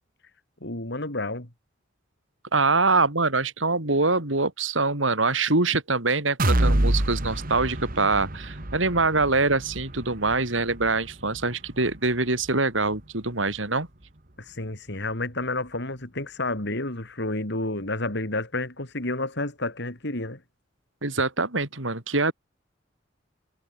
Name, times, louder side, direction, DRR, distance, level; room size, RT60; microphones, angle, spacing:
voice 1, 0.6-1.5 14.4-20.4, left 2 dB, 65° left, 5.0 m, -30 dB
voice 2, 2.5-13.9 21.0-22.3, right 3 dB, 90° right, 4.3 m, -24 dB
sound 1, 6.4-14.2 14.6-14.7 15.1-15.2, right 1 dB, 50° right, 2.3 m, -29 dB
head